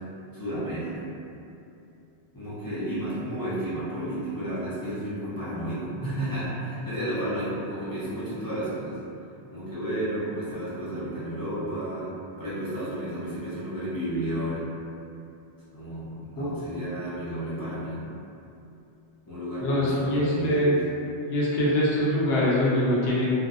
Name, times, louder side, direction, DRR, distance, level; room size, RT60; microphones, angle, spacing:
voice 1, 0.3-0.9 2.3-9.0 9.5-12.1 12.4-14.7 15.7-18.0 19.3-20.8, right 1 dB, 30° left, -12 dB, 0.4 m, -32 dB
voice 2, 19.6-20.8 21.3-23.3, left 1 dB, 70° left, -7 dB, 0.8 m, -23 dB
2.6 x 2.0 x 2.4 m, 2.7 s
omnidirectional pair, 1.1 m